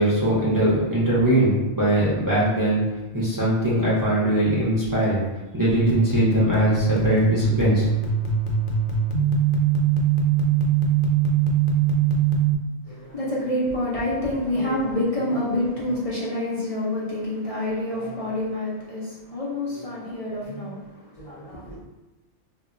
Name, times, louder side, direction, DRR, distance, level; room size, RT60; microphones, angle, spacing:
voice 1, 0.0-2.8 3.1-5.2 5.5-7.9, right 1 dB, 25° right, -9 dB, 0.5 m, -21 dB
sound 1, 5.7-12.5, right 6 dB, 90° left, 1.0 m, -22 dB
voice 2, 12.9-21.8, left 1 dB, 50° left, -7 dB, 0.4 m, -27 dB
2.2 x 2.1 x 3.7 m, 1.1 s
omnidirectional pair, 1.3 m